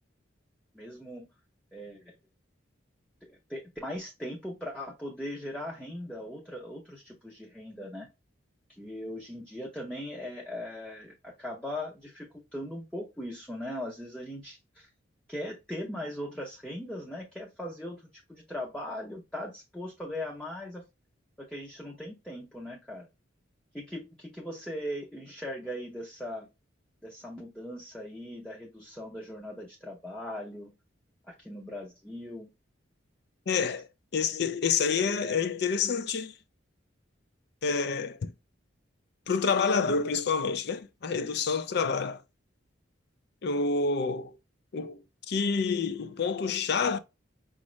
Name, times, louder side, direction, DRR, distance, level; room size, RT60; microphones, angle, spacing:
voice 1, 0.7-1.3 1.7-2.1 3.2-8.1 8.8-14.9 15.3-20.8 21.4-23.1 23.7-26.5 27.0-30.7 31.3-32.5, left 1 dB, 5° left, 0.6 m, -39 dB
voice 2, 33.5-33.9 34.1-36.3 37.6-38.3 39.3-42.2 43.4-44.4 44.7-45.0 45.3-47.0, left 5 dB, 55° left, 0.4 m, -28 dB
5.1 x 2.5 x 3.0 m
head